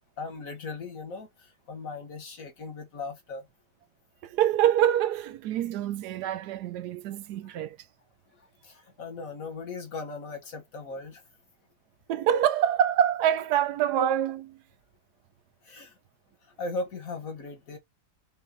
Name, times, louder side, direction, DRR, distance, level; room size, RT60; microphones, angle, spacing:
voice 1, 0.0-3.5 7.4-7.6 8.6-11.2 15.6-15.9 16.6-17.8, left 3 dB, 50° left, 1.7 m, -38 dB
voice 2, 4.2-7.8 12.1-14.6, right 10 dB, 75° right, 1.1 m, -25 dB
5.4 x 2.5 x 2.8 m
omnidirectional pair, 1.9 m